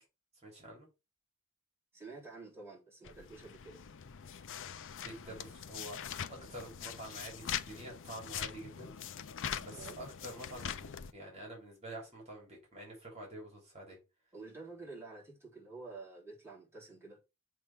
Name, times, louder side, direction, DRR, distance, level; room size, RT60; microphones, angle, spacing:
voice 1, 0.4-0.9 5.0-6.0 6.5-8.9 9.5-14.0, right 1 dB, 30° right, 3.3 m, -48 dB
voice 2, 1.9-3.9 9.8-10.1 14.3-17.2, right 3 dB, 10° right, 3.6 m, -49 dB
sound 1, 3.0-11.1, left 8 dB, 60° left, 0.6 m, -43 dB
7.5 x 3.7 x 5.8 m
head